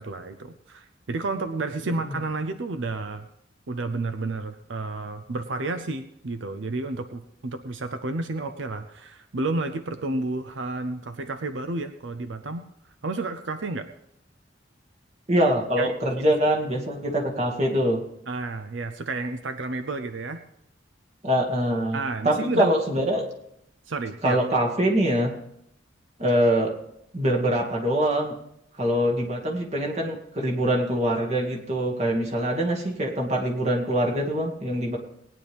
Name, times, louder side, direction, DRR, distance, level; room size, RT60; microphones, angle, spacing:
voice 1, 0.0-3.3 3.7-12.7 13.0-13.9 15.8-15.9 18.3-20.4 21.9-22.7 23.9-24.4, right 3 dB, 85° right, 9 dB, 0.7 m, -31 dB
voice 2, 15.3-18.0 21.2-22.0 22.2-23.3 24.2-25.3 26.2-26.7 27.1-28.3 28.8-35.0, right 1 dB, 35° right, -1 dB, 2.1 m, -24 dB
19.5 x 9.7 x 3.5 m, 0.77 s
head